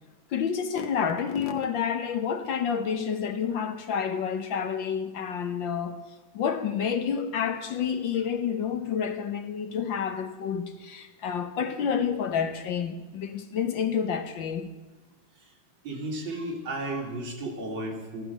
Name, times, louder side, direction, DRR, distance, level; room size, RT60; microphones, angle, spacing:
voice 1, 0.3-6.0 6.3-14.7, left 7 dB, 70° left, 1.9 m, -29 dB
voice 2, 15.8-18.2, right 1 dB, 75° right, 3.3 m, -34 dB
15.0 x 12.5 x 6.7 m
omnidirectional pair, 2.2 m